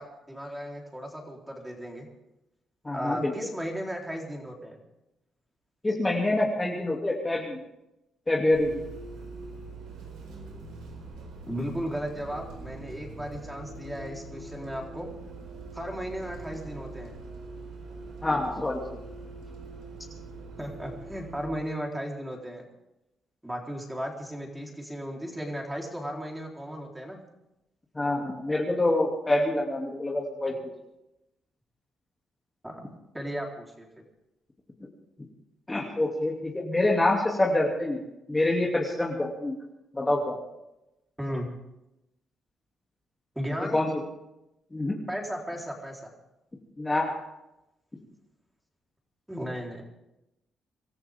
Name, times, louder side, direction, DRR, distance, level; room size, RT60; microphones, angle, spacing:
voice 1, 0.0-2.1 2.9-4.8 11.5-15.1 15.7-17.1 20.6-22.6 23.4-27.2 30.5-30.6 32.6-33.9 41.2-41.5 43.4-43.8 45.1-46.1 49.3-49.8, equal, 5° right, 0 dB, 4.2 m, -35 dB
voice 2, 2.8-3.3 5.8-7.6 8.3-8.8 18.2-18.8 27.9-30.5 35.7-38.0 38.3-39.6 39.9-40.4 43.7-43.9 44.7-45.0 46.8-47.2, left 2 dB, 15° left, -2 dB, 2.8 m, -26 dB
Bus, 8.5-21.5, right 3 dB, 80° right, 4.4 m, -43 dB
25.5 x 14.0 x 3.8 m, 0.90 s
cardioid pair, 90°, 0 cm